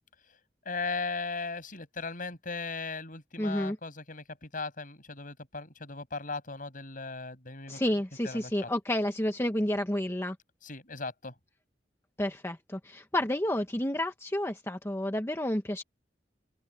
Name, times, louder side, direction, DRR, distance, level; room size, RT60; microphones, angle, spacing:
voice 1, 0.6-7.8 8.2-8.7 10.6-11.3, left 4 dB, 50° left, 6.3 m, -37 dB
voice 2, 3.4-3.8 7.7-10.4 12.2-15.8, left 1 dB, 15° left, 1.2 m, -30 dB
open air
head